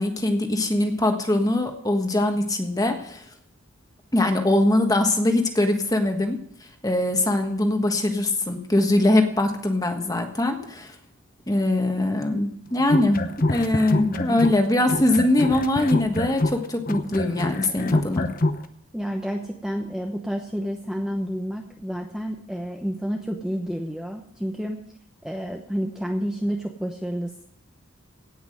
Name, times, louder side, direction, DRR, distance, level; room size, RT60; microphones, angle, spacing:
voice 1, 0.0-3.2 4.1-6.4 6.8-10.9 11.5-13.2 13.5-18.3, left 1 dB, 15° left, 5 dB, 1.4 m, -22 dB
sound 1, 12.8-14.6 14.9-18.6, left 2 dB, 40° left, 0.9 m, -25 dB
voice 2, 13.9-14.4 18.9-24.8 25.2-27.5, equal, 5° right, 1 dB, 0.9 m, -30 dB
17.0 x 6.0 x 7.7 m, 0.69 s
head